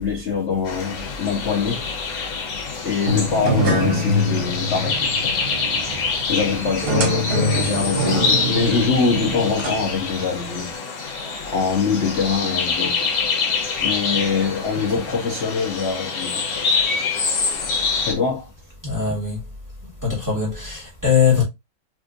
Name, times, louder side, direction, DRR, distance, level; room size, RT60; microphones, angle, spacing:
voice 1, 0.0-1.9 2.8-5.4 6.3-11.1 11.5-13.1 13.8-16.7 18.0-18.5, left 5 dB, 60° left, 0.7 m, -24 dB
sound 1, 0.7-18.1, left 5 dB, 75° left, 1.9 m, -26 dB
sound 2, 3.1-10.6, equal, 75° right, 0.5 m, -24 dB
voice 2, 18.8-19.4 20.0-21.4, left 7 dB, 10° right, 1.6 m, -20 dB
4.2 x 2.6 x 2.5 m
omnidirectional pair, 2.3 m